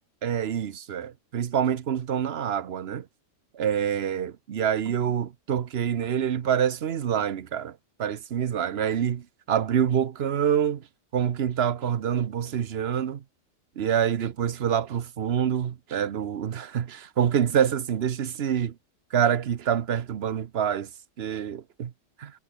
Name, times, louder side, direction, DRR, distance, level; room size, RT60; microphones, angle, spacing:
voice 1, 0.2-3.1 3.5-10.8 11.1-13.2 13.8-18.7 19.1-20.9 21.2-21.9 22.2-22.3, right 8 dB, 55° right, 1.0 m, -26 dB
omnidirectional pair, 1.4 m